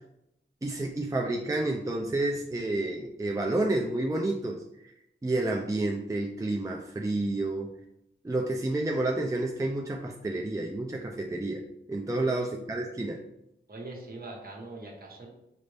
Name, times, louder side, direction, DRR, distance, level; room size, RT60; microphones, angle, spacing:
voice 1, 0.6-4.6 5.2-7.7 8.2-11.6 11.9-13.2, right 2 dB, 15° right, 1 dB, 0.4 m, -30 dB
voice 2, 12.2-12.5 13.7-15.3, right 2 dB, 50° right, -1 dB, 1.2 m, -42 dB
5.2 x 2.5 x 3.3 m, 0.82 s
wide cardioid pair, 75°, 20 cm